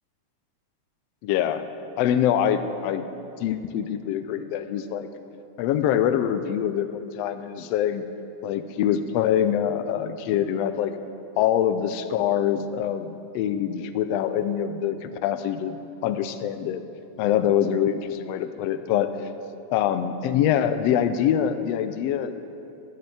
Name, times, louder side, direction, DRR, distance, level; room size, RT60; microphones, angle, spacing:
voice 1, 1.2-1.7 2.0-3.1 3.4-5.1 5.6-8.0 8.4-10.9 11.4-16.8 17.2-19.1 19.7-22.3, left 10 dB, 85° left, 10 dB, 1.5 m, -24 dB
11.5 x 6.6 x 8.9 m, 2.8 s
omnidirectional pair, 3.4 m